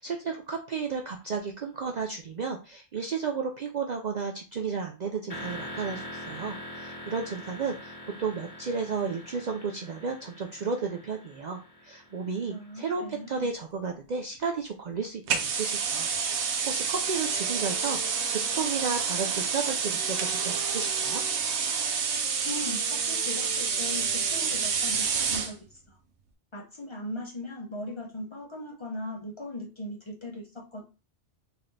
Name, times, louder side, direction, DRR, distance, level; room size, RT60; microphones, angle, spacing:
voice 1, 0.0-16.1 16.4-21.2, right 5 dB, 50° right, 2 dB, 0.5 m, -33 dB
sound 1, 5.3-13.1, left 1 dB, 45° left, 1.7 m, -43 dB
voice 2, 12.5-13.5 22.4-26.0 26.5-30.9, left 1 dB, 30° left, -1 dB, 0.9 m, -39 dB
sound 2, 15.3-25.5, right 6 dB, 75° right, 0.9 m, -28 dB
sound 3, 17.2-25.1, left 2 dB, 85° left, 1.1 m, -46 dB
3.9 x 2.8 x 3.3 m, 0.32 s
omnidirectional pair, 1.2 m